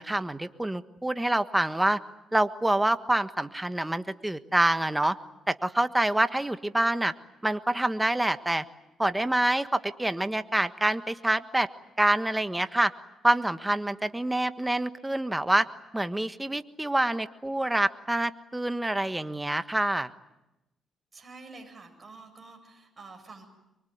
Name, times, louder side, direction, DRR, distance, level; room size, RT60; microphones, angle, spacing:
voice 1, 0.0-2.0 2.3-5.1 5.5-7.1 7.4-8.6 9.0-11.7 12.0-12.9 13.2-15.7 15.9-20.1, right 1 dB, 10° right, 10 dB, 1.4 m, -26 dB
voice 2, 21.1-23.4, right 3 dB, 25° right, 3 dB, 7.7 m, -48 dB
25.0 x 23.5 x 9.6 m, 0.92 s
cardioid pair, 90°, 0 cm